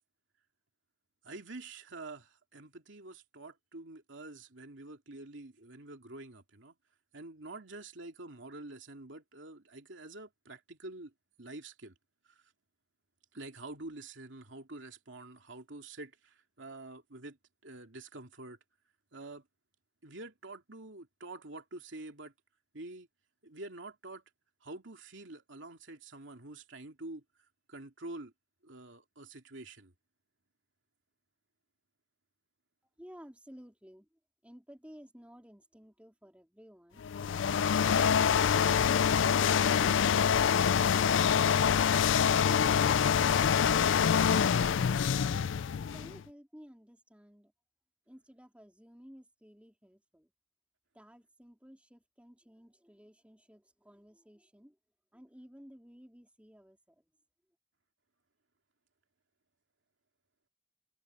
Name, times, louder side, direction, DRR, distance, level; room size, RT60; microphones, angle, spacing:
voice 1, 1.2-6.7 7.1-11.1 11.4-12.0 12.3-12.4 13.3-18.6 19.1-19.4 20.0-22.3 22.7-23.1 23.4-24.2 24.6-27.2 27.7-28.3 28.6-29.9, right 2 dB, 70° right, 2.7 m, -47 dB
voice 2, 33.0-38.9 44.7-45.5 45.9-47.5 48.1-50.3 50.9-54.8 55.1-57.1, equal, 5° right, 3.5 m, -55 dB
sound 1, 37.0-46.2, left 7 dB, 70° left, 0.4 m, -26 dB
head